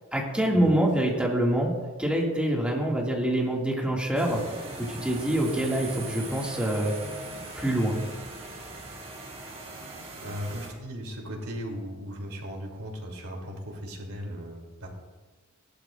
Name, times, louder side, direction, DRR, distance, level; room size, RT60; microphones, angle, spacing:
voice 1, 0.1-4.4 4.8-6.9 7.5-8.0, right 1 dB, 5° right, -2 dB, 2.0 m, -25 dB
sound 1, 4.1-10.7, right 2 dB, 30° right, 3.8 m, -40 dB
voice 2, 10.2-14.9, equal, 90° right, 0 dB, 2.9 m, -37 dB
18.0 x 11.5 x 2.5 m, 1.3 s
head